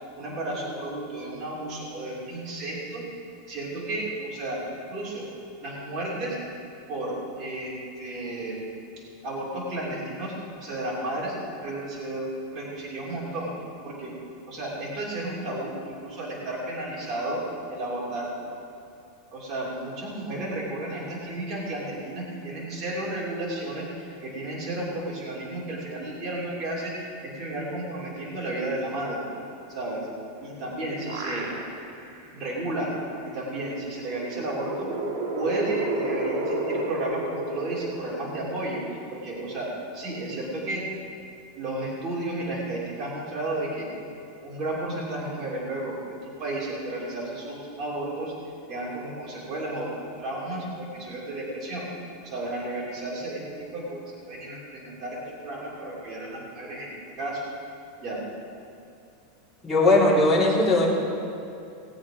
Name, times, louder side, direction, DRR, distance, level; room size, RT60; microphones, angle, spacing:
voice 1, 0.1-3.1 3.5-5.3 5.6-6.4 6.9-8.6 9.2-11.4 11.6-13.5 13.8-14.2 14.5-18.3 19.3-29.3 29.7-30.1 30.4-31.5 32.3-32.9 33.3-34.9 35.3-38.8 39.1-40.8 41.5-43.9 44.4-48.3 48.7-51.9 52.2-57.5 58.0-58.3, right 1 dB, 25° right, -6 dB, 3.1 m, -33 dB
sound 1, 30.4-32.0 32.5-32.6 33.9-38.7, right 2 dB, 80° right, 2.9 m, -31 dB
voice 2, 59.6-60.9, left 2 dB, 10° left, -8 dB, 3.2 m, -19 dB
18.5 x 8.3 x 5.0 m, 2.6 s
supercardioid pair, 165°, 0 cm